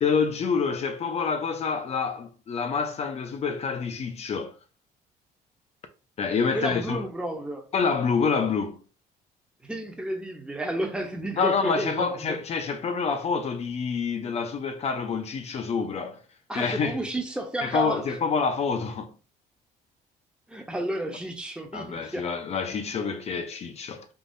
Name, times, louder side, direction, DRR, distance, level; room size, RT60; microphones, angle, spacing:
voice 1, 0.0-4.5 6.2-7.1 7.7-8.8 11.4-16.2 16.5-17.0 17.6-19.2 21.7-24.1, left 5 dB, 40° left, 0.6 m, -27 dB
voice 2, 6.5-7.6 9.6-12.4 16.5-18.1 20.5-22.3, right 1 dB, 5° right, 0.7 m, -31 dB
3.6 x 2.6 x 2.6 m
cardioid pair, 110°, 17 cm